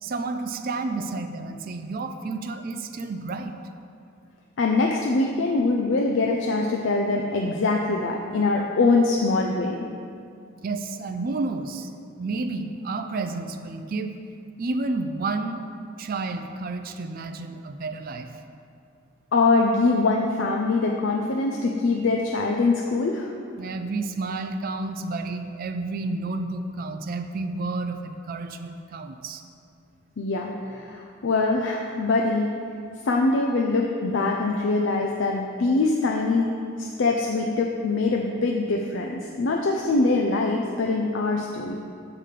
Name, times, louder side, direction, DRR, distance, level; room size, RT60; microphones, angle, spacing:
voice 1, 0.0-3.5 10.6-11.9 12.2-14.1 14.6-15.6 16.0-18.3 23.6-29.4, right 3 dB, 45° right, 6 dB, 0.4 m, -30 dB
voice 2, 4.6-9.8 19.3-23.3 30.2-32.5 33.0-36.5 36.8-41.8, left 3 dB, 65° left, 0 dB, 0.5 m, -23 dB
5.8 x 4.9 x 6.6 m, 2.4 s
head